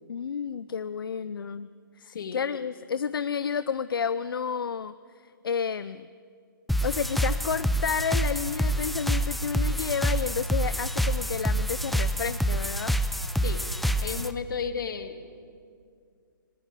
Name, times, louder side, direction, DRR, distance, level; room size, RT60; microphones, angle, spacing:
voice 1, 0.1-1.7 2.0-4.9 5.2-6.1 6.8-12.9, left 6 dB, 85° left, 14 dB, 0.5 m, -31 dB
voice 2, 2.1-2.5 13.4-13.6 14.0-15.3, left 6 dB, 65° left, 8 dB, 2.0 m, -34 dB
sound 1, 6.7-14.3, equal, ahead, 0.5 m, -27 dB
19.5 x 17.0 x 9.0 m, 2.2 s
hypercardioid pair, 145°, 12 cm